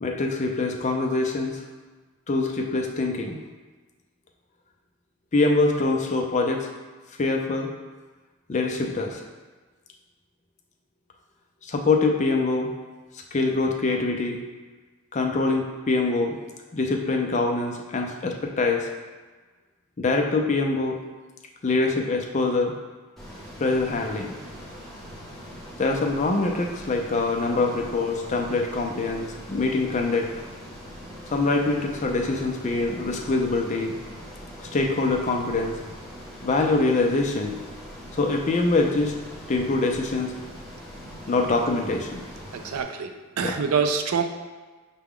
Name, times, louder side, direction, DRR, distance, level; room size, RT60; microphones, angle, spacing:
voice 1, 0.0-1.6 2.3-3.4 5.3-6.7 7.2-7.7 8.5-9.2 11.6-12.7 13.3-14.4 15.1-16.4 16.7-18.9 20.0-21.0 21.6-22.8 23.6-24.4 25.8-30.3 31.3-33.9 34.7-35.7 36.4-37.6 38.2-39.1 39.5-40.3 41.3-42.2 43.4-43.5, left 3 dB, 30° left, 1 dB, 0.4 m, -24 dB
Ocean, 23.2-42.8, equal, ahead, 0.9 m, -42 dB
voice 2, 42.5-43.1 43.4-44.2, right 6 dB, 80° right, 6 dB, 0.4 m, -25 dB
5.8 x 2.2 x 3.6 m, 1.3 s
head